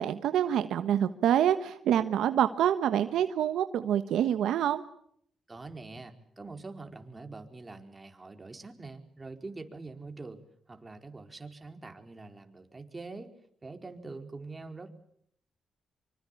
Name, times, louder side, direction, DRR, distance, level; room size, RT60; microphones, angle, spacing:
voice 1, 0.0-4.8, right 10 dB, 80° right, 10 dB, 1.3 m, -26 dB
voice 2, 5.5-10.4 10.7-13.3 13.6-14.9, right 3 dB, 25° right, 5 dB, 4.6 m, -44 dB
25.5 x 25.0 x 8.7 m, 0.70 s
supercardioid pair, 60°, 0 cm